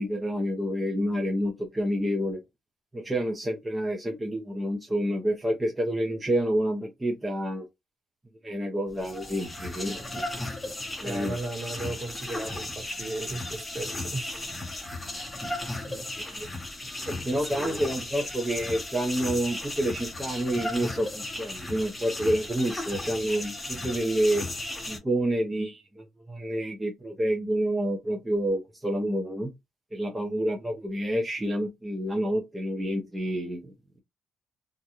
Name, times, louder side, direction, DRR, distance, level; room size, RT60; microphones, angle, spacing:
voice 1, 0.0-2.4 2.9-7.7 8.4-10.2 10.6-10.7 11.0-11.4 15.9-16.5 17.1-24.5 24.9-29.5 29.9-34.0, equal, 15° right, 0.6 m, -29 dB
sound 1, 8.9-25.0, left 2 dB, 15° left, 0.8 m, -35 dB
voice 2, 11.0-14.4 15.8-16.0 17.2-17.9, right 2 dB, 40° right, 1.3 m, -36 dB
2.4 x 2.1 x 2.8 m
cardioid pair, 95°, 0 cm